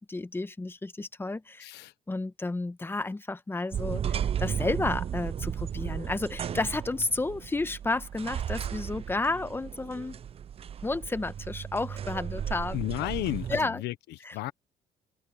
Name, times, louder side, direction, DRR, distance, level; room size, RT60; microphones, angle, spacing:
voice 1, 0.0-1.7 2.1-10.2 10.8-12.8 13.5-13.8 14.3-14.5, left 2 dB, 15° left, 1.2 m, -32 dB
voice 2, 1.6-1.9 12.7-14.5, left 17 dB, 85° left, 1.0 m, -33 dB
sound 1, 3.7-13.6, right 9 dB, 35° right, 0.5 m, -34 dB
open air
cardioid pair, 110°, 17 cm